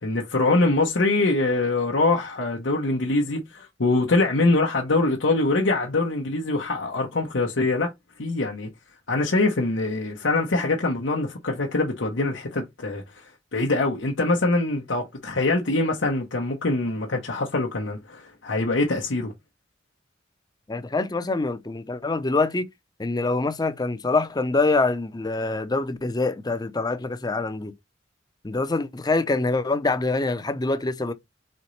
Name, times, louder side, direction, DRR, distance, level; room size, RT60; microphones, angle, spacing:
voice 1, 0.0-7.9 8.2-8.7 9.1-19.3, left 2 dB, 85° left, 0.9 m, -24 dB
voice 2, 20.7-22.7 23.0-27.7 28.4-31.1, left 3 dB, 20° left, 0.6 m, -25 dB
4.3 x 3.9 x 3.2 m
head